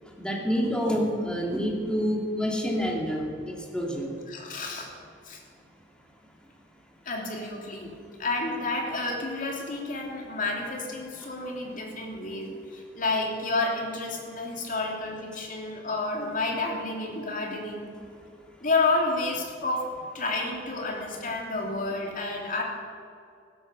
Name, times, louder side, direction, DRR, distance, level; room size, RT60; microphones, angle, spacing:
voice 1, 0.2-3.3 3.7-4.1, equal, 5° left, -1 dB, 2.5 m, -27 dB
voice 2, 4.3-4.9 5.2-5.4 7.0-7.9 8.2-17.9 18.6-19.9 20.1-22.6, left 3 dB, 45° left, 0 dB, 3.2 m, -30 dB
16.0 x 13.0 x 6.8 m, 2.4 s
head